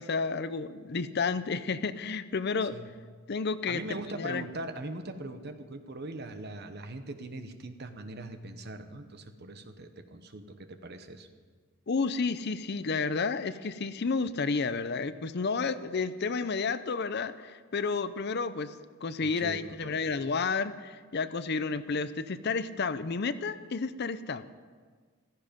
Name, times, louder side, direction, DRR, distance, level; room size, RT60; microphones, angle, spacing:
voice 1, 0.0-2.7 3.3-3.8 4.2-4.4 11.9-18.7 19.0-24.4, left 4 dB, 50° left, 13 dB, 0.6 m, -31 dB
voice 2, 3.7-11.3 19.2-20.2, right 2 dB, 50° right, 8 dB, 1.1 m, -41 dB
15.0 x 14.0 x 5.3 m, 1.5 s
head